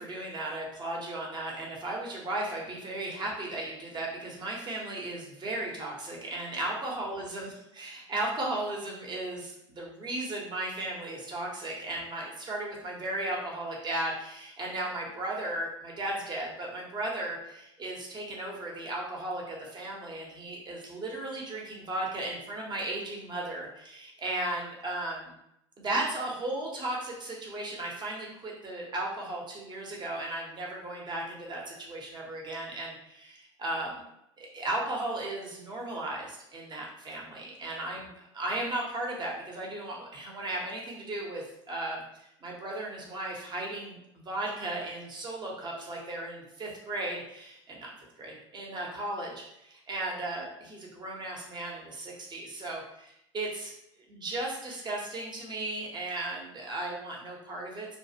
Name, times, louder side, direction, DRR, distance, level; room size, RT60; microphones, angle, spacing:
voice 1, 0.0-25.3 25.8-34.0 34.4-47.9 48.2-53.7 54.1-58.0, right 1 dB, 30° right, -2 dB, 1.0 m, -36 dB
2.5 x 2.4 x 2.8 m, 0.80 s
hypercardioid pair, 75°, 15 cm